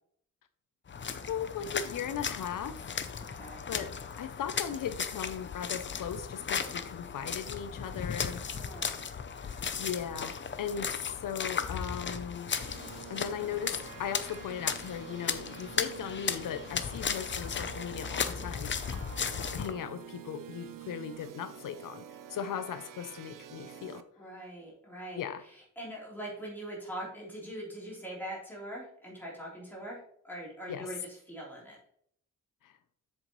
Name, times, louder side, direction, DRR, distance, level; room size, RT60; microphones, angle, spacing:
Footsteps Puddles D, 0.9-19.7, left 6 dB, 35° left, 0.6 m, -36 dB
voice 1, 1.3-2.9 3.7-3.9 4.2-8.4 9.4-11.0 11.2-12.5 13.1-19.0 19.4-22.0 22.3-24.0 25.2-25.4 30.7-30.9 32.6-32.7, left 8 dB, 90° left, 11 dB, 0.7 m, -38 dB
voice 2, 3.3-3.7 8.5-9.0 24.2-30.0 30.2-31.8, right 1 dB, 5° left, -5 dB, 3.5 m, -42 dB
sound 1, 12.6-24.0, right 10 dB, 90° right, 0.6 m, -48 dB
8.0 x 6.8 x 3.1 m, 0.66 s
wide cardioid pair, 150°, 32 cm